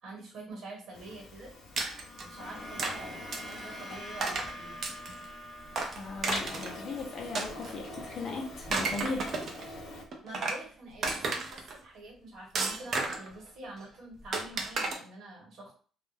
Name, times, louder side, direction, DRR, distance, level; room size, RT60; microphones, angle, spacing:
voice 1, 0.0-1.5 2.2-4.9 10.2-15.7, right 2 dB, 55° right, -1 dB, 1.2 m, -46 dB
Printer, 0.9-10.0, left 2 dB, 85° left, 0.8 m, -45 dB
sound 1, 1.6-10.0, equal, 15° left, 1.0 m, -47 dB
sound 2, 1.8-2.2 2.8-3.0 3.3-3.6 4.2-4.5 4.8-5.2 5.7-6.8 7.3-8.0 8.5-9.6 10.1-10.6 11.0-11.7 12.6-13.3 14.3-14.9, right 3 dB, 40° right, 0.4 m, -32 dB
voice 2, 6.0-9.4, left 3 dB, 40° left, 0 dB, 0.6 m, -38 dB
2.3 x 2.1 x 3.2 m, 0.41 s
cardioid pair, 175°, 0 cm